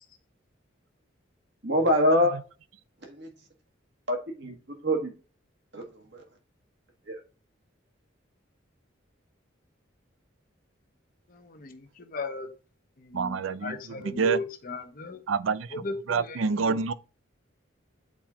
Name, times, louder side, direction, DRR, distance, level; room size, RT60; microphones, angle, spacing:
voice 1, 1.6-2.4 3.0-3.3 4.1-4.5 4.8-5.1 5.7-6.2 7.1-7.2, equal, 60° right, 1.8 m, -25 dB
voice 2, 11.3-12.5 13.0-15.2 15.7-16.8, left 3 dB, 45° left, 0.9 m, -37 dB
voice 3, 13.1-13.7 14.2-14.4 15.3-15.7 16.1-16.9, right 5 dB, 85° right, 0.5 m, -26 dB
7.5 x 4.3 x 3.7 m
head